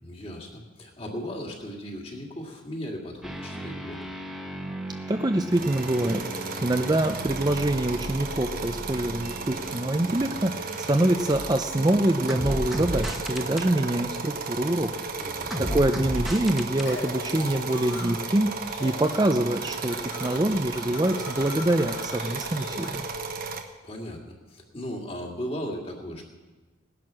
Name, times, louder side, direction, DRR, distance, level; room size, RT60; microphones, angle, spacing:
voice 1, 0.0-4.1 15.1-15.5 23.8-24.2 24.5-26.2, equal, 30° left, 0 dB, 2.2 m, -36 dB
sound 1, 3.2-11.8 12.3-13.7 15.5-16.9, equal, ahead, 1.1 m, -35 dB
voice 2, 5.1-14.9 15.7-18.5 18.8-23.1, right 1 dB, 20° right, 6 dB, 0.5 m, -25 dB
sound 2, 5.5-23.6, right 4 dB, 45° right, 1.2 m, -35 dB
sound 3, 16.8-18.3 18.6-19.3 19.5-23.1, left 2 dB, 60° left, 4.1 m, -41 dB
18.5 x 11.0 x 6.3 m, 1.2 s
head